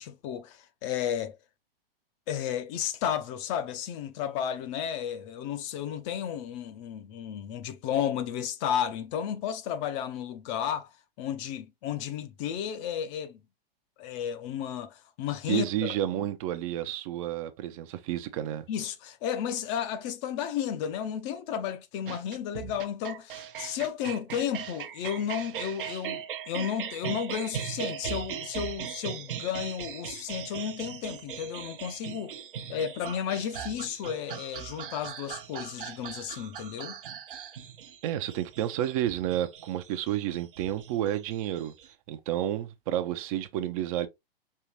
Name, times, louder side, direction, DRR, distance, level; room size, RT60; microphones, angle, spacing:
voice 1, 0.0-1.4 2.3-10.9 11.2-13.4 14.0-15.9 18.7-32.3 32.7-37.0, left 9 dB, 30° left, 0.6 m, -33 dB
voice 2, 15.5-18.7 38.0-41.7 42.1-44.1, right 12 dB, 35° right, 0.6 m, -30 dB
sound 1, 22.1-41.9, right 9 dB, 60° right, 0.9 m, -39 dB
5.5 x 2.8 x 3.0 m
figure-of-eight pair, 115°, 29 cm